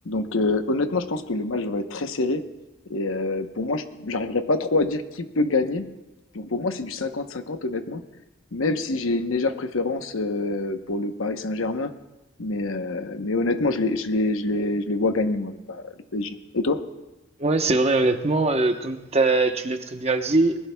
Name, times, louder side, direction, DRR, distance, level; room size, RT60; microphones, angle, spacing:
voice 1, 0.0-2.4 2.9-5.9 6.3-8.0 8.5-11.9 12.4-16.8, left 2 dB, 85° left, 8 dB, 0.9 m, -26 dB
voice 2, 17.4-20.6, right 2 dB, 30° right, 6 dB, 0.9 m, -22 dB
21.0 x 20.0 x 2.3 m, 1.1 s
head